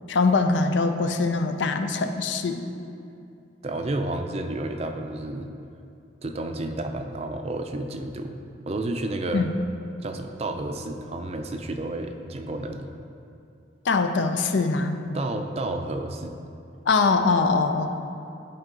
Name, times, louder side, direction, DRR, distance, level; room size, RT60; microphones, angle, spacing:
voice 1, 0.1-2.6 9.3-9.5 13.8-15.0 16.9-17.9, left 4 dB, 75° left, 7 dB, 0.5 m, -22 dB
voice 2, 3.6-5.5 6.2-8.4 8.7-9.5 10.0-12.9 15.1-16.3, right 2 dB, 35° right, 5 dB, 0.4 m, -31 dB
11.0 x 4.5 x 3.8 m, 2.6 s
head